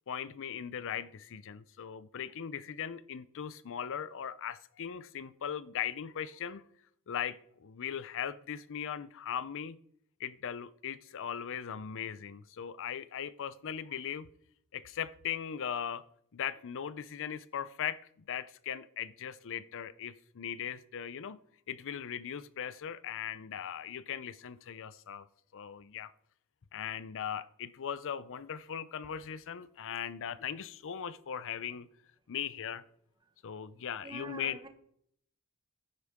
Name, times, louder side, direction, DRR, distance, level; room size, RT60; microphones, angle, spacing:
voice 1, 0.1-6.6 7.1-9.8 10.2-14.3 14.7-16.0 16.3-18.0 18.3-21.4 21.7-25.3 25.5-26.1 26.7-31.9 32.3-32.8 33.4-34.6, left 8 dB, 60° left, 0.5 m, -39 dB
voice 2, 34.0-34.7, right 2 dB, 20° right, 1.2 m, -45 dB
12.0 x 9.8 x 3.6 m
head